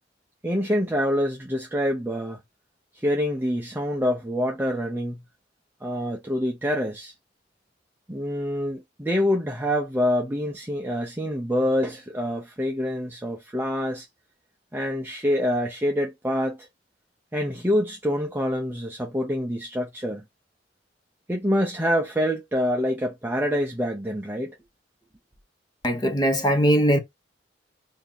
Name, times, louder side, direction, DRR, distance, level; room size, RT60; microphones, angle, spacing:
voice 1, 0.4-2.4 3.0-5.2 5.8-7.1 8.1-14.1 14.7-16.7 17.3-20.2 21.3-24.5, equal, 10° right, 0.6 m, -26 dB
voice 2, 25.8-27.0, equal, 25° left, 0.8 m, -20 dB
2.7 x 2.7 x 3.7 m
head